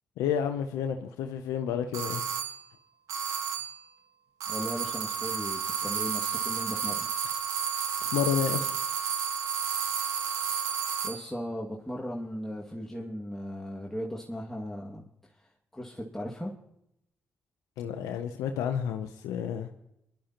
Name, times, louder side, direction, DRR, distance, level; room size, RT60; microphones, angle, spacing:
voice 1, 0.2-2.2 8.1-8.8 17.8-19.7, left 8 dB, 90° left, 7 dB, 0.6 m, -30 dB
sound 1, 1.9-2.6 3.1-3.8 4.4-11.3, right 6 dB, 80° right, 1.4 m, -31 dB
voice 2, 4.5-7.1 11.0-15.0 15.7-16.5, equal, 5° left, -3 dB, 2.1 m, -37 dB
21.5 x 11.5 x 2.9 m, 0.80 s
supercardioid pair, 50°, 6 cm